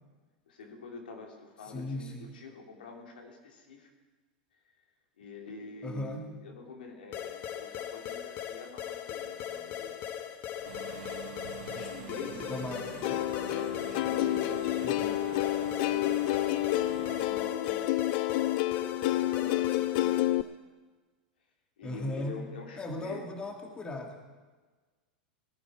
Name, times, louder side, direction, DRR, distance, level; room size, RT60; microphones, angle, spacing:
voice 1, 0.5-3.9 5.2-10.8 11.7-12.7 13.5-15.2 15.6-16.3 16.9-17.9 19.0-20.7 21.8-23.2, left 4 dB, 85° left, 1 dB, 2.6 m, -46 dB
voice 2, 1.6-2.3 5.8-6.3 11.7-11.9 12.3-13.3 14.8-15.1 21.8-22.4 22.8-24.2, left 1 dB, 20° left, 2 dB, 2.1 m, -38 dB
sound 1, 7.1-20.5, left 9 dB, 45° left, 1.2 m, -39 dB
Engine / Mechanisms, 10.7-17.5, right 12 dB, 70° right, 0.8 m, -44 dB
Plucked string instrument, 13.0-20.4, left 16 dB, 60° left, 0.4 m, -29 dB
19.0 x 10.5 x 4.8 m, 1.3 s
hypercardioid pair, 110°, 5 cm